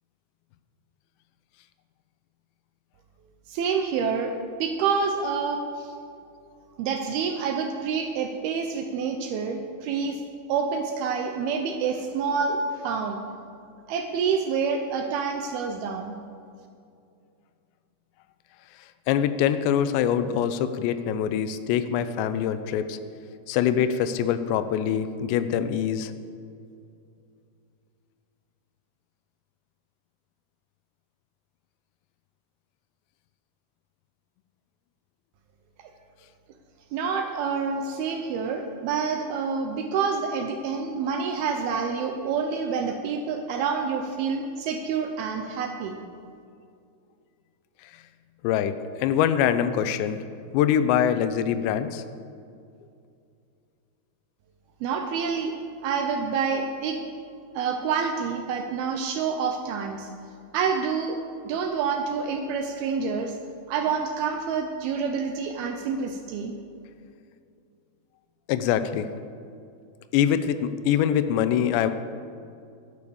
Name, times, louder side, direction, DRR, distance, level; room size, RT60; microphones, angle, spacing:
voice 1, 3.5-5.9 6.8-10.2 10.5-13.2 13.9-16.2 35.8-35.9 36.9-46.0 54.8-55.5 55.8-57.0 57.5-60.1 60.5-61.2 61.5-63.4 63.7-66.5, right 5 dB, 75° right, 5 dB, 2.4 m, -27 dB
voice 2, 19.1-23.0 23.5-26.1 48.4-48.7 49.0-50.2 50.5-52.0 68.5-69.1 70.1-71.9, left 9 dB, 85° left, 11 dB, 2.9 m, -24 dB
12.0 x 9.6 x 7.0 m, 2.4 s
omnidirectional pair, 4.9 m